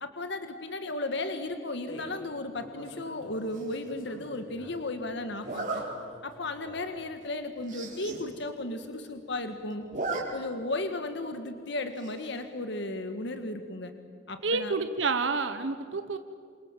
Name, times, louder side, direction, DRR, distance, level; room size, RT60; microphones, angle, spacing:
voice 1, 0.0-5.8 6.2-9.9 10.3-13.9 14.3-14.7, left 2 dB, 60° left, 8 dB, 1.7 m, -35 dB
sound 1, 1.9-2.2 2.5-3.5 3.9-4.8 5.4-6.9, left 1 dB, 80° left, 5.2 m, -48 dB
Zipper (clothing), 3.5-3.9 5.4-5.8 6.4-6.6 6.9-7.0 7.2-7.3 7.6-8.2 8.6-8.7 8.8-9.4 9.7-10.2 10.6-10.7 12.0-12.4, right 3 dB, 40° right, 5.0 m, -36 dB
voice 2, 14.4-16.2, right 4 dB, 70° right, 9 dB, 1.1 m, -29 dB
28.5 x 26.5 x 7.4 m, 2.3 s
head